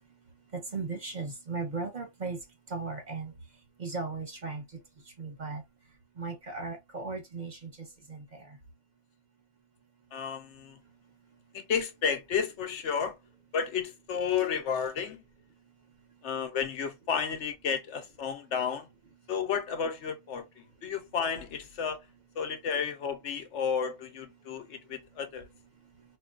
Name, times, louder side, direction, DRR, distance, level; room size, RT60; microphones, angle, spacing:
voice 1, 0.7-2.4 2.7-3.3 3.8-4.6 5.2-5.6 6.2-7.6 8.1-8.2, right 4 dB, 40° right, 0.9 m, -36 dB
voice 2, 10.1-10.8 11.5-13.2 13.5-15.2 16.2-18.9 19.3-20.5 20.8-22.0 22.4-25.5, left 7 dB, 70° left, 0.9 m, -32 dB
4.4 x 2.2 x 2.4 m
omnidirectional pair, 1.3 m